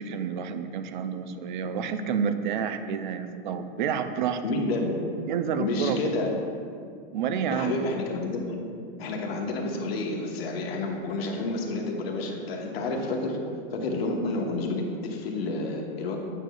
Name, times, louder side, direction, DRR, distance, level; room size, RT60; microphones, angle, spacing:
voice 1, 0.0-4.6 5.3-6.1 7.1-7.7, right 7 dB, 55° right, 10 dB, 0.4 m, -29 dB
voice 2, 4.4-5.0 5.6-6.3 7.5-8.6 9.0-13.4 13.7-16.2, left 2 dB, 85° left, 1 dB, 1.1 m, -29 dB
8.9 x 6.0 x 2.3 m, 2.3 s
supercardioid pair, 175°, 30 cm